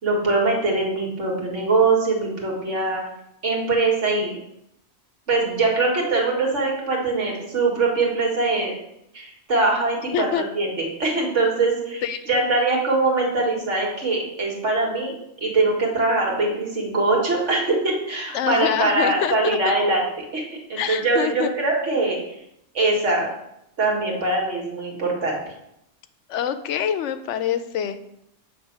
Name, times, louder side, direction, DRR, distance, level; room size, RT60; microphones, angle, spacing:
voice 1, 0.0-3.0 3.4-4.4 5.3-8.8 9.1-15.1 15.4-20.0 20.3-22.2 22.7-23.3 23.8-25.4, right 3 dB, 90° right, -1 dB, 2.0 m, -22 dB
voice 2, 10.1-10.4 12.0-12.3 18.3-19.8 20.8-21.5 26.3-28.1, left 9 dB, 80° left, 11 dB, 0.9 m, -25 dB
7.5 x 3.3 x 5.9 m, 0.80 s
omnidirectional pair, 1.2 m